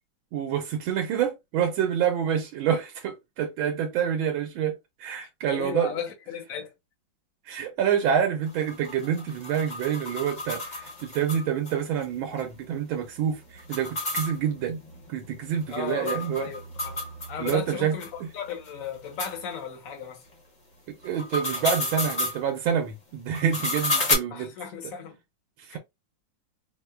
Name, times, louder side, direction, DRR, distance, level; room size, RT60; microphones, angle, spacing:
voice 1, 0.3-5.9 7.5-14.8 15.1-16.5 17.4-18.0 21.0-24.5 25.6-25.8, right 8 dB, 90° right, 1.5 m, -27 dB
voice 2, 5.5-6.7 15.7-17.0 17.3-20.2 24.3-25.2 25.7-25.8, left 8 dB, 50° left, 1.2 m, -35 dB
sound 1, 8.5-11.7 12.0-12.1 12.4-12.5 13.6-17.6 18.0-18.1 18.7-18.8 19.2-19.3 21.0-22.4 23.3-24.1, left 2 dB, 30° left, 0.9 m, -31 dB
4.6 x 2.1 x 2.2 m
omnidirectional pair, 2.1 m